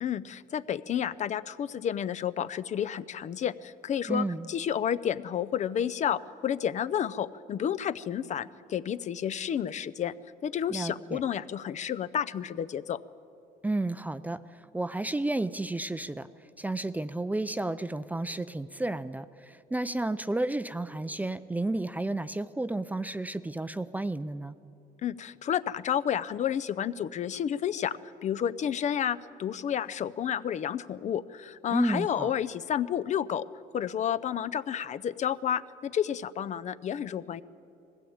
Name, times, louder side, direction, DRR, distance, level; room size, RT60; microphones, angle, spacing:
voice 1, 0.0-10.1 10.4-13.0 25.0-33.4 33.7-37.4, left 9 dB, 45° left, 15 dB, 0.5 m, -31 dB
voice 2, 4.1-4.5 10.7-11.2 13.6-16.3 16.6-24.5 31.7-32.3, right 2 dB, 10° right, 14 dB, 0.4 m, -32 dB
19.5 x 15.5 x 8.7 m, 2.7 s
cardioid pair, 110°, 17 cm